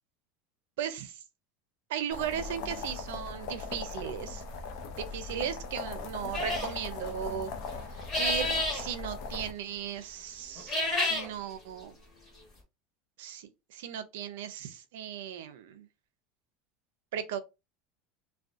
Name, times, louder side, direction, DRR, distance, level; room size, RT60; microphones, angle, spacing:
voice 1, 0.8-1.2 1.9-4.4 5.0-11.9 13.2-15.9 17.1-17.4, right 9 dB, 85° right, 0.5 m, -37 dB
sound 1, 2.1-9.5, left 4 dB, 50° left, 0.4 m, -39 dB
sound 2, 6.3-6.7 8.0-8.8 10.6-11.3, left 2 dB, 20° left, 0.9 m, -29 dB
2.4 x 2.2 x 2.5 m
supercardioid pair, 175°, 0 cm